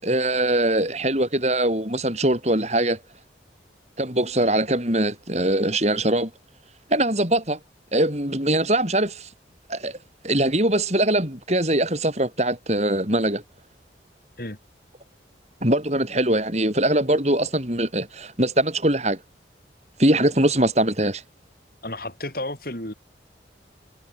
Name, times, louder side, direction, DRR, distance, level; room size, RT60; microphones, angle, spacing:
voice 1, 0.0-3.0 4.0-6.3 6.9-7.6 7.9-9.3 9.7-10.0 10.2-13.4 15.6-19.2 20.0-21.2, right 1 dB, 35° right, 6.9 m, -22 dB
voice 2, 21.8-22.9, left 1 dB, 55° left, 7.0 m, -32 dB
head